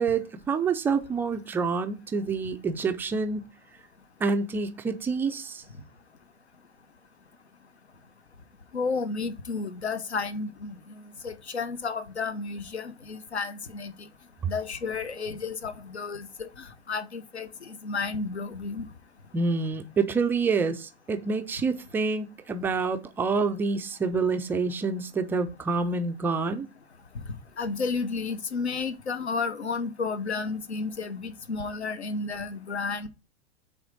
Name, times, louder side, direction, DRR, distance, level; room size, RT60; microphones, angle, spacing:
voice 1, 0.0-3.4 4.2-5.6 19.3-26.7, right 4 dB, 5° right, 0.3 m, -27 dB
voice 2, 8.7-10.8 11.2-14.1 14.5-18.9 27.6-33.1, left 4 dB, 80° left, 1.0 m, -32 dB
8.6 x 3.6 x 6.0 m
figure-of-eight pair, 95°, 33 cm